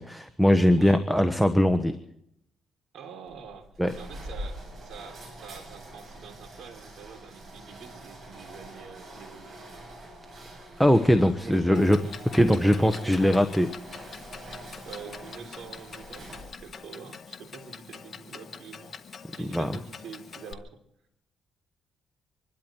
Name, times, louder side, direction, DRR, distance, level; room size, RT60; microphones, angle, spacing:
voice 1, 0.0-2.0 3.8-3.9 10.8-12.0 12.3-13.7 13.9-14.1 19.4-19.7, equal, ahead, 9 dB, 1.0 m, -21 dB
voice 2, 0.8-1.1 2.9-3.7 3.9-9.6 11.1-11.9 12.4-13.5 14.8-19.0 19.3-20.8, right 6 dB, 75° right, 5 dB, 3.3 m, -45 dB
sound 1, 3.3-16.8, right 1 dB, 40° right, 7.9 m, -45 dB
Clock, 11.7-20.5, left 6 dB, 45° left, 1.4 m, -45 dB
26.0 x 12.5 x 4.4 m, 0.76 s
cardioid pair, 90°, 0 cm